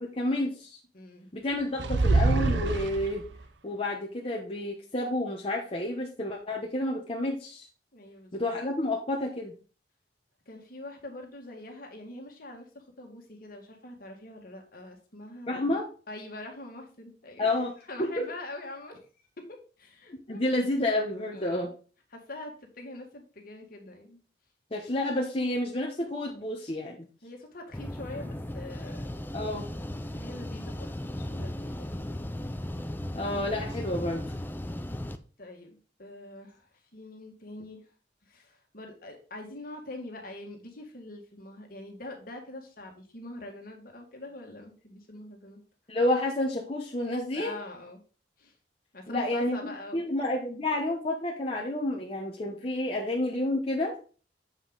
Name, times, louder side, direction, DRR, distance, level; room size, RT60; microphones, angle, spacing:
voice 1, 0.0-0.8 1.3-3.2 3.6-7.7 8.3-9.5 15.5-15.9 17.4-17.7 18.0-18.1 20.3-21.7 24.7-27.0 29.3-29.7 33.1-34.3 45.9-47.6 49.1-54.0, left 1 dB, 35° left, -1 dB, 1.1 m, -30 dB
voice 2, 0.9-1.3 7.9-8.3 10.5-15.7 16.1-17.6 17.9-19.4 19.8-20.5 21.3-21.7 22.1-24.2 27.2-29.1 29.9-32.2 35.4-37.8 38.2-45.6 47.3-48.0 48.4-48.5 48.9-50.0, left 2 dB, 55° left, 2 dB, 2.0 m, -44 dB
sound 1, 1.8-3.4, right 3 dB, 80° right, 0.6 m, -25 dB
sound 2, 27.7-35.2, left 1 dB, 10° left, 0.5 m, -36 dB
7.5 x 5.4 x 4.0 m, 0.38 s
head